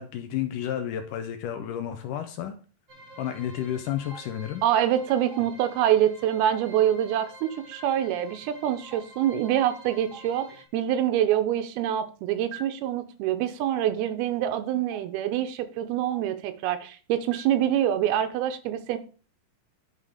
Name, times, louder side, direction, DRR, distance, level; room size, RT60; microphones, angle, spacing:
voice 1, 0.0-2.5 3.2-4.6, left 10 dB, 75° left, 8 dB, 2.0 m, -31 dB
sound 1, 2.9-10.6, equal, 40° right, 1.1 m, -49 dB
Stream, 4.1-4.2 5.3-5.4 6.5-6.6 7.7-7.8 8.9-9.0 10.1-10.2 11.3-11.4 12.5-12.6 13.7-13.8 14.9-15.0 16.1-16.2 17.3-17.4, right 10 dB, 65° right, 1.0 m, -41 dB
voice 2, 4.6-19.0, right 11 dB, 85° right, 9 dB, 2.8 m, -25 dB
11.0 x 3.8 x 4.9 m, 0.38 s
omnidirectional pair, 4.4 m